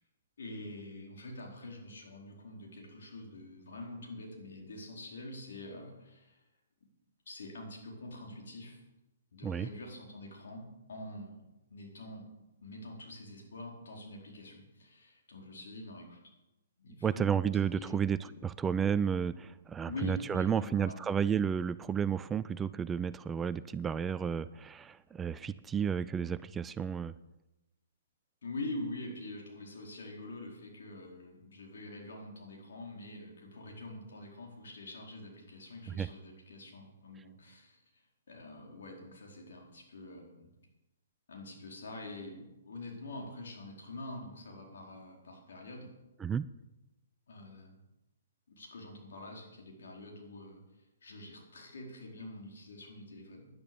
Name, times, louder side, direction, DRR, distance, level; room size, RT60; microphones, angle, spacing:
voice 1, 0.4-6.4 7.3-8.8 9.3-10.6 10.9-11.4 11.7-12.3 12.6-16.2 16.8-17.4 17.7-18.5 19.8-21.0 28.4-37.8 38.3-40.5 41.3-45.9 47.3-47.8 48.5-50.6 51.0-53.5, left 1 dB, 70° left, 0 dB, 4.4 m, -45 dB
voice 2, 17.0-27.2 35.9-36.1 46.2-46.5, right 7 dB, 15° right, 15 dB, 0.3 m, -32 dB
10.5 x 10.5 x 6.9 m, 0.96 s
hypercardioid pair, 135°, 0 cm